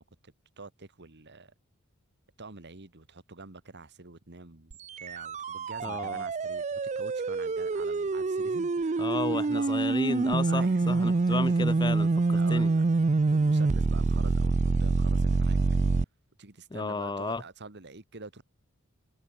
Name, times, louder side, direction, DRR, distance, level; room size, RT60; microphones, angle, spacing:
voice 1, 0.0-1.5 2.4-9.9 10.5-11.7 12.3-12.8 13.3-15.6 16.4-18.4, right 3 dB, 50° right, 2.0 m, -46 dB
sound 1, 4.7-16.0, right 3 dB, 35° right, 0.5 m, -26 dB
voice 2, 5.8-6.2 9.0-12.7 16.7-17.4, left 3 dB, 20° left, 0.6 m, -33 dB
head